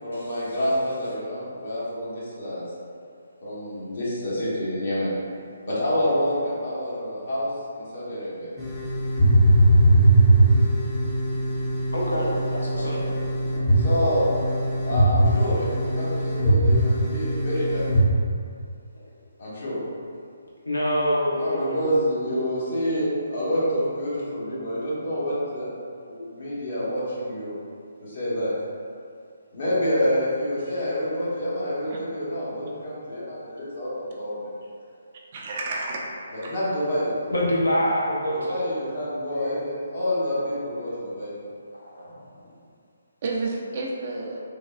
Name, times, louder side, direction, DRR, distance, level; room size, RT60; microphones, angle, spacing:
voice 1, 0.0-2.7 3.4-5.1 5.6-8.5 12.7-13.2 13.5-14.3 14.8-17.8 19.4-19.8 21.3-27.6 28.0-28.5 29.5-34.5 36.3-37.2 38.3-41.3, equal, 50° left, -9 dB, 1.0 m, -28 dB
sound 1, 8.6-18.0, right 1 dB, 15° left, 0.5 m, -20 dB
voice 2, 11.9-13.0 20.7-22.0 37.3-38.6 42.1-42.2, equal, 80° left, -6 dB, 0.7 m, -25 dB
voice 3, 35.3-36.6 39.4-39.5 43.2-44.4, right 2 dB, 40° right, -2 dB, 0.3 m, -31 dB
3.3 x 2.2 x 2.2 m, 2.3 s
figure-of-eight pair, 140°, 0 cm